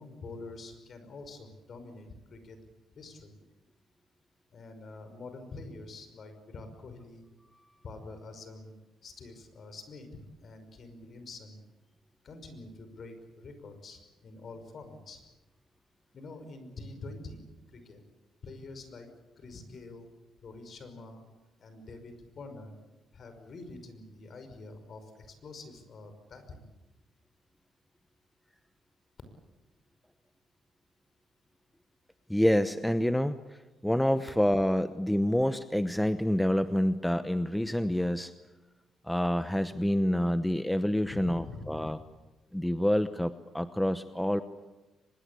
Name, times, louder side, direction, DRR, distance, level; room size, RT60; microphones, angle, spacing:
voice 1, 0.0-2.6 3.0-3.3 4.5-7.2 7.8-8.7 9.0-11.6 12.2-15.2 16.1-18.0 18.4-19.1 19.4-20.1 20.4-21.2 21.6-22.7 23.1-26.7 41.0-42.0, left 3 dB, 50° left, 9 dB, 5.5 m, -46 dB
voice 2, 32.3-33.4 33.8-38.3 39.0-42.0 42.5-44.4, equal, 5° left, 11 dB, 0.9 m, -27 dB
24.0 x 22.0 x 8.4 m, 1.1 s
cardioid pair, 90°, 0 cm